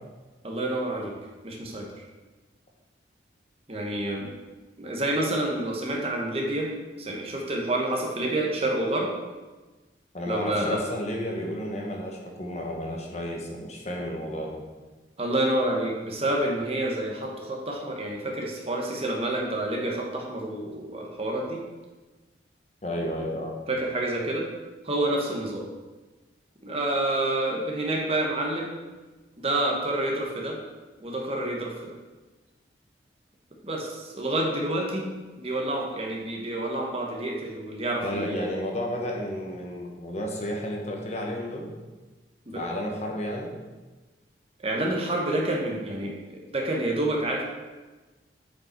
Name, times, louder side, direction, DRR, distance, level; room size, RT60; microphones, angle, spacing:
voice 1, 0.4-1.1 1.4-2.0 3.7-4.3 4.8-6.7 7.0-9.1 10.3-10.8 15.2-21.6 23.7-24.4 24.8-25.6 26.6-28.7 29.4-30.6 31.0-31.7 33.6-35.0 35.4-38.5 42.5-42.6 44.6-47.4, right 1 dB, 35° right, -1 dB, 1.2 m, -28 dB
voice 2, 10.1-14.6 22.8-23.5 38.0-41.7 42.5-43.5, equal, 35° left, 0 dB, 1.1 m, -32 dB
8.1 x 5.2 x 4.4 m, 1.2 s
head